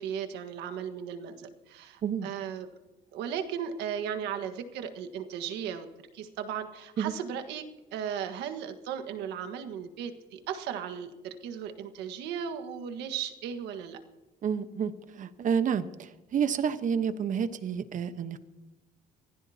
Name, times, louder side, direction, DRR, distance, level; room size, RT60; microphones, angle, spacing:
voice 1, 0.0-2.7 3.1-5.9 6.1-7.6 7.9-14.0, right 8 dB, 85° right, 8 dB, 1.6 m, -36 dB
voice 2, 14.4-18.4, right 7 dB, 50° right, 11 dB, 1.1 m, -30 dB
25.0 x 16.5 x 2.8 m, 1.1 s
cardioid pair, 110°, 17 cm